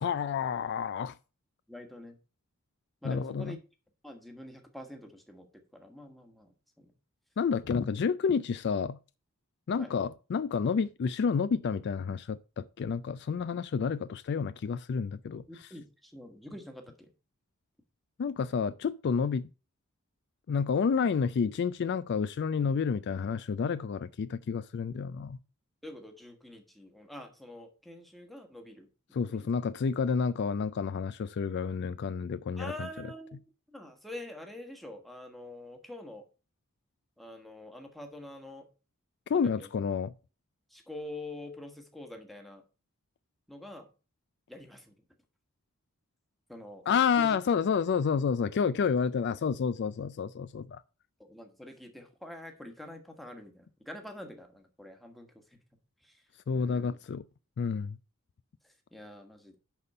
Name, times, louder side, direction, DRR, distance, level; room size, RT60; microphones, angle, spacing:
voice 1, 0.0-1.2 3.0-3.6 7.4-9.0 9.7-15.4 18.2-19.5 20.5-25.4 29.1-32.7 39.3-40.1 46.9-50.8 56.5-57.2 57.6-58.0, left 6 dB, 50° left, 0.3 m, -29 dB
voice 2, 1.7-2.2 3.0-3.6 4.0-6.9 9.8-9.9 15.5-17.1 25.8-28.9 29.2-29.5 32.6-33.4 33.7-36.2 37.2-38.6 39.3-39.7 40.7-42.6 43.5-43.9 44.5-45.0 46.5-47.4 51.2-55.6 56.0-56.2 56.5-57.0 58.6-59.6, left 1 dB, ahead, 1.4 m, -46 dB
10.5 x 4.1 x 5.4 m
head